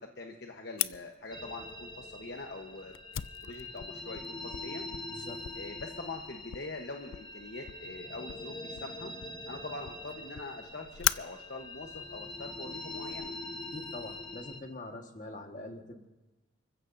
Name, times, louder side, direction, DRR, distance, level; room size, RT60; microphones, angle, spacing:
voice 1, 0.0-2.9 3.4-4.8 5.6-9.1 9.5-13.3, left 2 dB, 55° left, 2 dB, 1.1 m, -43 dB
Fire, 0.8-13.3, left 13 dB, 85° left, 0.4 m, -40 dB
sound 1, 1.3-14.6, left 2 dB, 20° left, 1.2 m, -44 dB
voice 2, 5.1-5.4 13.7-16.1, left 2 dB, 40° left, 3 dB, 1.6 m, -44 dB
30.0 x 15.0 x 2.7 m, 1.1 s
head